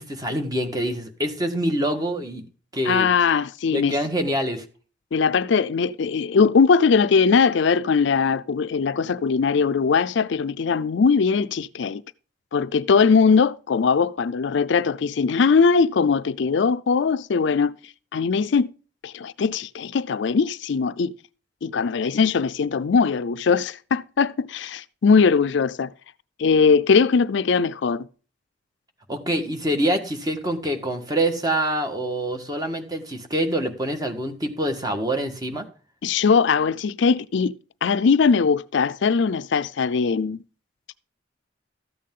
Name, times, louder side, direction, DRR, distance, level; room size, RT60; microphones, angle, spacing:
voice 1, 0.0-2.4 2.7-3.1 3.7-4.6 29.1-35.7, right 1 dB, 20° right, 1.5 m, -25 dB
voice 2, 2.9-3.9 5.1-12.0 12.5-17.7 18.1-18.7 19.0-21.1 21.6-25.9 26.4-28.1 36.0-37.5 37.8-40.4, left 5 dB, 65° left, 0.4 m, -20 dB
13.5 x 8.4 x 3.7 m
head